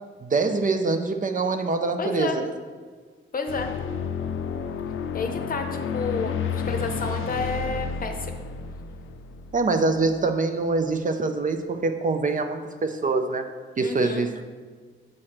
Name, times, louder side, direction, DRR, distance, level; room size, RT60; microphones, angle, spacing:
voice 1, 0.2-2.5 9.5-13.5 13.8-14.3, right 3 dB, 40° right, 7 dB, 0.4 m, -24 dB
voice 2, 2.0-2.4 3.3-3.8 5.1-8.5 13.8-14.3, left 4 dB, 40° left, 5 dB, 0.7 m, -30 dB
sound 1, 3.5-10.1, left 6 dB, 75° left, 0.4 m, -31 dB
7.5 x 3.2 x 5.7 m, 1.5 s
wide cardioid pair, 120°, 21 cm